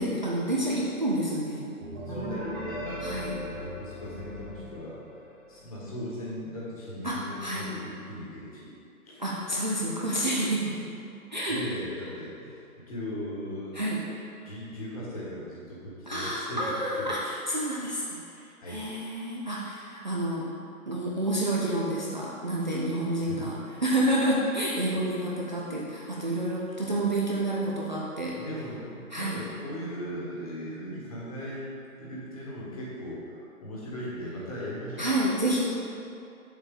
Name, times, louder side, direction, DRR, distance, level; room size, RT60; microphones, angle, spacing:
voice 1, 0.0-1.7 3.0-3.4 7.0-7.7 9.2-10.7 11.3-11.6 13.7-14.0 16.1-18.2 18.7-20.5 20.9-23.6 23.8-28.4 29.1-29.4 35.0-35.6, right 1 dB, 30° right, -5 dB, 0.6 m, -29 dB
sound 1, 1.8-5.5, equal, 10° right, 1.4 m, -38 dB
voice 2, 2.1-5.0 5.5-8.8 9.0-9.2 11.5-13.8 14.4-16.6 18.6-18.8 23.2-23.5 28.4-35.1, equal, 25° left, -6 dB, 1.4 m, -38 dB
7.2 x 6.9 x 3.6 m, 2.6 s
hypercardioid pair, 165°, 44 cm